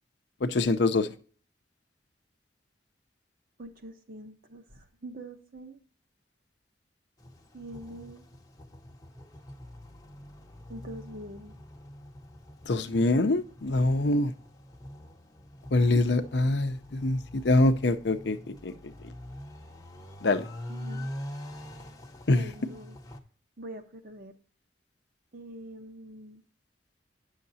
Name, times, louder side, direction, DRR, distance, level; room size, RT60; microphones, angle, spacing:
voice 1, 0.4-1.1 12.7-14.3 15.7-18.7 20.2-20.5 22.3-22.5, left 2 dB, 65° left, 0.6 m, -24 dB
voice 2, 3.6-5.8 7.5-8.2 10.7-11.6 15.7-15.9 20.7-21.1 22.3-23.0 23.6-24.3 25.3-26.4, right 1 dB, 50° right, 1.0 m, -44 dB
sound 1, 7.2-23.2, left 1 dB, 20° left, 0.8 m, -45 dB
9.6 x 6.4 x 2.7 m
head